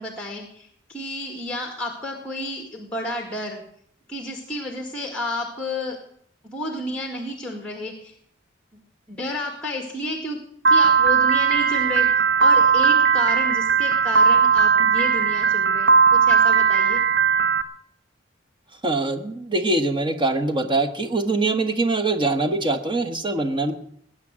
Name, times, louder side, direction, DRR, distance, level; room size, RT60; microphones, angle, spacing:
voice 1, 0.0-3.6 4.1-6.0 6.4-8.1 9.1-10.4 10.7-12.1 12.4-17.0, left 1 dB, 5° left, 3 dB, 1.9 m, -31 dB
Piano, 10.6-17.6, right 6 dB, 55° right, 1.1 m, -18 dB
voice 2, 18.8-23.7, right 2 dB, 25° right, 7 dB, 1.2 m, -23 dB
19.5 x 9.3 x 7.5 m, 0.68 s
head